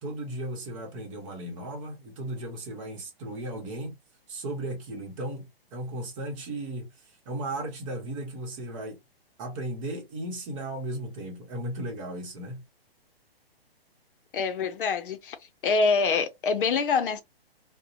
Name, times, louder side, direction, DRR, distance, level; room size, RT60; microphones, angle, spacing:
voice 1, 0.0-3.9 4.3-6.9 7.2-9.0 9.4-12.6, right 1 dB, 30° right, 0.9 m, -35 dB
voice 2, 14.3-15.4 15.6-17.2, left 4 dB, 55° left, 0.6 m, -25 dB
2.6 x 2.1 x 2.5 m
hypercardioid pair, 145°, 31 cm